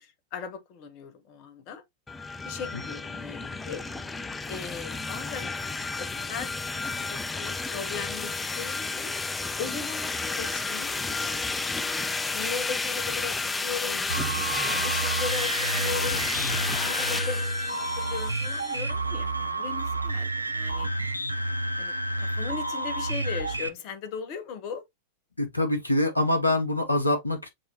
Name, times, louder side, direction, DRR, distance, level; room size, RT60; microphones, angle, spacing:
voice 1, 0.0-1.8 2.4-3.8 4.5-5.6 6.0-9.1 9.6-11.7 12.3-14.0 14.5-20.9 21.8-24.8, left 6 dB, 40° left, 1.0 m, -38 dB
sound 1, 2.1-18.8, left 3 dB, 10° left, 0.4 m, -31 dB
sound 2, 14.1-23.7, right 2 dB, 85° right, 0.4 m, -30 dB
voice 2, 25.4-27.5, left 1 dB, 85° left, 1.0 m, -25 dB
6.5 x 2.8 x 2.8 m
figure-of-eight pair, 90°, 0 cm